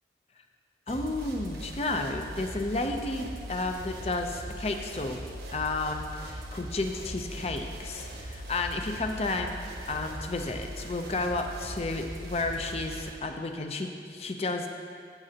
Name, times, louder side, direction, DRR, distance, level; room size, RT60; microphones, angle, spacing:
voice 1, 0.9-9.6 9.9-14.7, left 2 dB, 35° left, 5 dB, 0.6 m, -32 dB
sound 1, 0.9-13.1, right 1 dB, 65° right, 1.1 m, -40 dB
14.0 x 7.5 x 2.8 m, 2.2 s
head